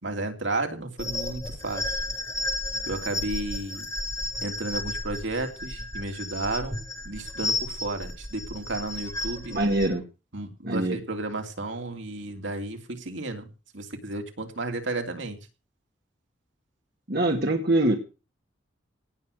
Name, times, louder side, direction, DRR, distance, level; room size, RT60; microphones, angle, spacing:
voice 1, 0.0-2.0 2.9-3.9 4.4-6.8 7.0-9.6 10.3-13.5 13.7-15.4, right 2 dB, 75° right, 4 dB, 3.0 m, -32 dB
sound 1, 1.0-9.9, left 2 dB, 15° left, 1.6 m, -33 dB
voice 2, 9.5-10.0 10.6-11.0 17.1-18.0, right 1 dB, 55° right, 3 dB, 2.1 m, -24 dB
18.0 x 7.0 x 8.0 m, 0.34 s
head